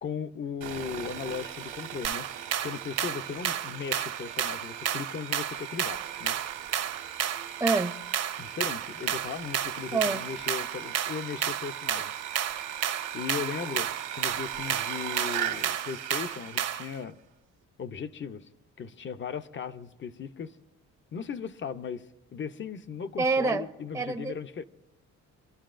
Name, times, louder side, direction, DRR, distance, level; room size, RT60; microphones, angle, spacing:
voice 1, 0.0-6.4 8.4-12.7 13.1-17.2 17.8-18.5 18.8-20.6 21.1-24.6, left 6 dB, 40° left, 0.7 m, -37 dB
Sawing, 0.6-17.0, right 10 dB, 85° right, 1.3 m, -38 dB
sound 1, 2.0-17.0, right 9 dB, 55° right, 0.8 m, -32 dB
voice 2, 7.6-7.9 9.9-10.2 23.2-23.7 23.9-24.3, right 3 dB, 10° right, 0.6 m, -26 dB
24.0 x 12.0 x 2.6 m
cardioid pair, 90°, 30 cm